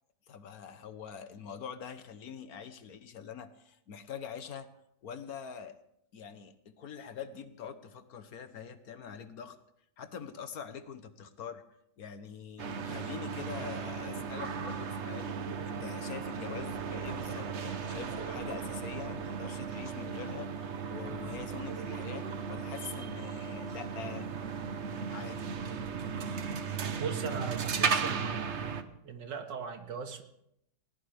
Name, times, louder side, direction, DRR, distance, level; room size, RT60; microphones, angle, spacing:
voice 1, 0.3-4.7 5.0-5.8 6.1-9.6 10.0-11.6 12.0-24.3 25.1-25.5, left 7 dB, 60° left, 11 dB, 1.4 m, -44 dB
sound 1, 12.6-28.8, right 6 dB, 45° right, 1.1 m, -36 dB
voice 2, 27.0-30.2, right 6 dB, 90° right, 5 dB, 2.3 m, -39 dB
20.0 x 18.5 x 3.4 m, 0.76 s
omnidirectional pair, 1.9 m